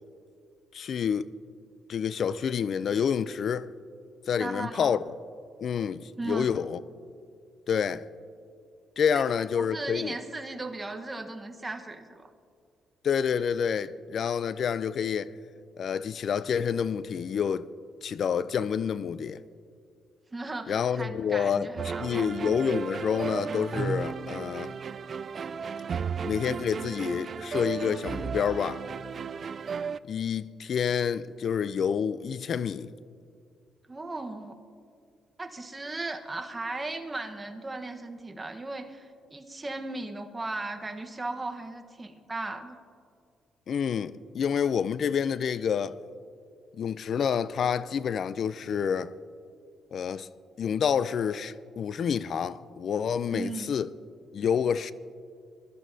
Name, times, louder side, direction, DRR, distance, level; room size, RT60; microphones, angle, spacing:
voice 1, 0.7-1.3 1.9-3.7 4.3-5.1 5.6-6.8 7.7-8.1 9.0-10.2 13.0-15.3 15.8-17.7 18.0-19.4 20.7-21.7 22.0-24.8 26.2-28.8 30.1-32.9 43.7-46.0 46.7-49.1 49.9-50.3 50.6-53.9 54.3-54.9, left 7 dB, 60° left, 0.4 m, -28 dB
voice 2, 4.4-5.0 6.2-6.5 9.1-9.2 9.6-12.3 20.3-22.3 33.9-34.6 35.4-42.8 53.3-53.7, right 2 dB, 20° right, 1.1 m, -37 dB
sound 1, 21.8-30.0, right 6 dB, 50° right, 0.3 m, -34 dB
22.5 x 12.0 x 2.7 m
cardioid pair, 90°, 0 cm